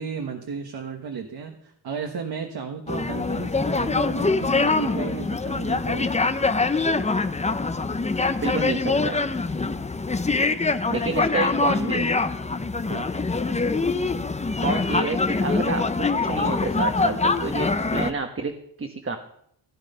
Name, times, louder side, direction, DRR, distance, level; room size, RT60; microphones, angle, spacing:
voice 1, 0.0-6.1 12.9-13.1, right 5 dB, 55° right, 4 dB, 1.6 m, -34 dB
sound 1, 2.9-18.1, left 3 dB, 15° left, 0.7 m, -24 dB
voice 2, 8.4-9.2 10.9-12.1 14.6-18.5 18.8-19.2, right 4 dB, 30° right, 5 dB, 1.3 m, -29 dB
16.5 x 9.0 x 5.6 m, 0.73 s
cardioid pair, 105°, 45 cm